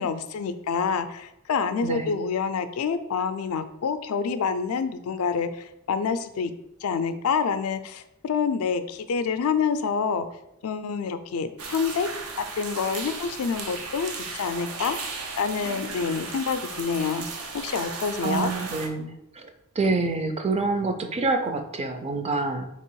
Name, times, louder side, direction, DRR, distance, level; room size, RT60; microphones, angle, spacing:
voice 1, 0.0-6.5 6.8-10.3 10.6-12.1 12.4-15.0 15.4-17.3 17.5-18.5, left 5 dB, 75° left, 11 dB, 0.4 m, -27 dB
sound 1, 11.6-18.9, right 4 dB, 90° right, 0.7 m, -36 dB
voice 2, 18.2-22.7, right 3 dB, 30° right, 7 dB, 0.4 m, -27 dB
3.3 x 2.9 x 4.6 m, 0.85 s
head